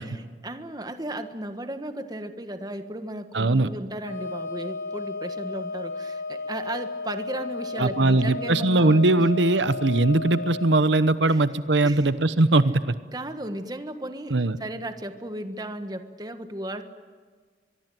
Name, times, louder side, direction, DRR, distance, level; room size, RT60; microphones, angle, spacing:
voice 1, 0.0-9.3 11.3-11.4 11.8-12.1 13.1-16.8, right 1 dB, 20° right, 8 dB, 1.5 m, -35 dB
voice 2, 3.3-3.7 7.7-13.0 14.3-14.6, right 2 dB, 85° right, 13 dB, 1.0 m, -20 dB
Wind instrument woodwind instrument, 4.0-10.7, left 3 dB, 90° left, 4.2 m, -34 dB
23.5 x 23.5 x 9.2 m, 1.6 s
head